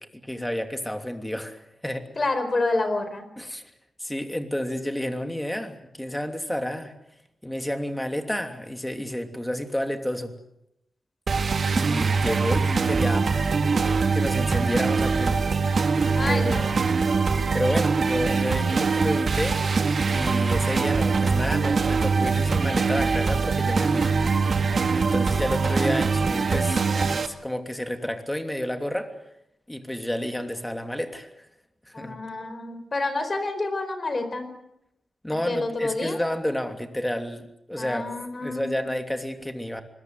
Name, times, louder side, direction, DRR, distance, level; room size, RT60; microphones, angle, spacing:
voice 1, 0.1-2.0 3.4-3.6 4.0-6.9 7.4-10.3 11.7-13.3 13.8-15.4 16.3-16.7 17.5-19.7 20.1-24.1 24.9-29.1 29.7-31.3 31.9-32.2 35.2-37.4 37.7-38.0 38.4-39.8, left 1 dB, 10° left, 6 dB, 3.0 m, -30 dB
voice 2, 2.2-3.3 16.1-16.7 31.9-34.5 35.5-36.2 37.8-38.9, left 2 dB, 40° left, 10 dB, 4.7 m, -28 dB
sound 1, 11.3-27.3, right 4 dB, 60° right, 2.0 m, -23 dB
26.0 x 22.0 x 7.9 m, 0.81 s
wide cardioid pair, 90°, 0 cm